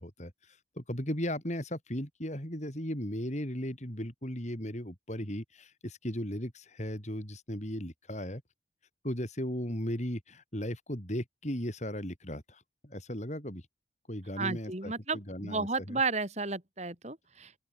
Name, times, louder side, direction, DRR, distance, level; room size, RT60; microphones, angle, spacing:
voice 1, 0.0-8.4 9.0-13.7 14.1-16.0, equal, 40° left, 6.4 m, -36 dB
voice 2, 14.4-17.6, right 3 dB, 35° right, 3.8 m, -33 dB
open air
head